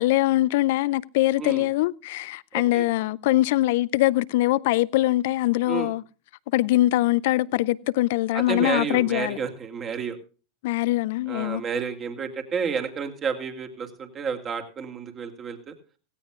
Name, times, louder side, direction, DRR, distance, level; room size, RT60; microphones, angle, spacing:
voice 1, 0.0-6.0 6.5-9.4 10.6-11.6, left 17 dB, 60° left, 0.5 m, -23 dB
voice 2, 2.5-2.9 5.7-5.9 8.3-10.2 11.3-15.7, right 6 dB, 30° right, 2.8 m, -30 dB
17.5 x 16.0 x 2.4 m
figure-of-eight pair, 90°, 0 cm